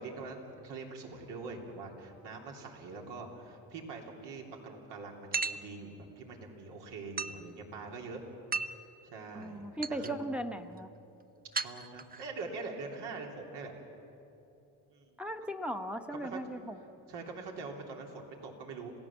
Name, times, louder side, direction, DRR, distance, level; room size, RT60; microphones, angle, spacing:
voice 1, 0.0-8.2 9.0-10.2 11.6-13.7 14.9-15.2 16.1-16.4 17.1-18.9, right 3 dB, 75° right, 1 dB, 3.3 m, -44 dB
sound 1, 5.3-5.7 7.2-7.4 8.5-8.8 9.4-9.5 9.8-10.1 11.5-12.3, right 4 dB, 20° right, 0.6 m, -34 dB
voice 2, 9.3-10.9 15.2-16.8, right 1 dB, 5° right, 4 dB, 1.1 m, -37 dB
27.0 x 17.0 x 7.3 m, 2.9 s
cardioid pair, 90°, 41 cm